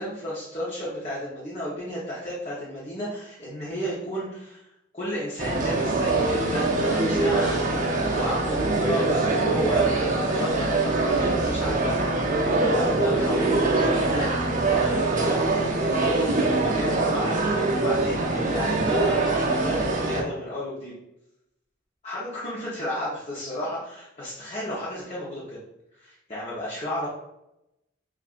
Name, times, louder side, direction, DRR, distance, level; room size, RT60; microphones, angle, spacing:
voice 1, 0.0-20.9 22.0-25.6 26.0-27.1, equal, 30° left, -8 dB, 1.0 m, -33 dB
sound 1, 5.4-20.2, right 2 dB, 40° right, 0.6 m, -23 dB
6.4 x 2.5 x 2.5 m, 0.86 s
head